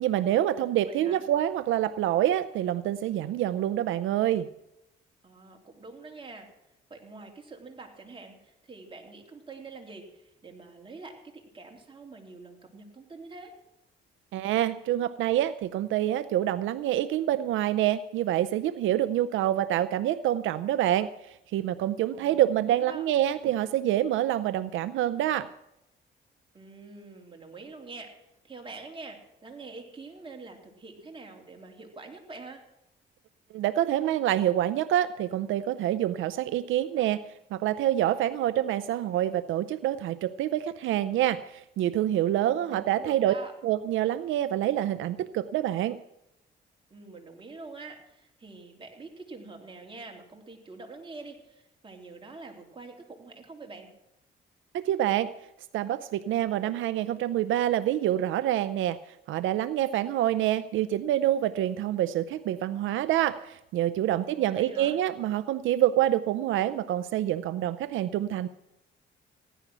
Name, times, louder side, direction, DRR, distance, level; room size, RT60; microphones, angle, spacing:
voice 1, 0.0-4.5 14.3-25.5 33.5-37.2 37.5-43.3 43.6-46.0 54.7-55.3 55.7-59.0 59.3-68.5, right 12 dB, 80° right, 14 dB, 0.5 m, -26 dB
voice 2, 0.5-1.2 5.2-6.5 6.9-13.5 22.1-23.1 26.5-28.1 28.4-32.6 42.4-43.5 46.9-53.9 64.1-65.0, right 3 dB, 25° right, 2 dB, 3.0 m, -46 dB
15.5 x 11.0 x 6.1 m, 0.86 s
cardioid pair, 90°, 20 cm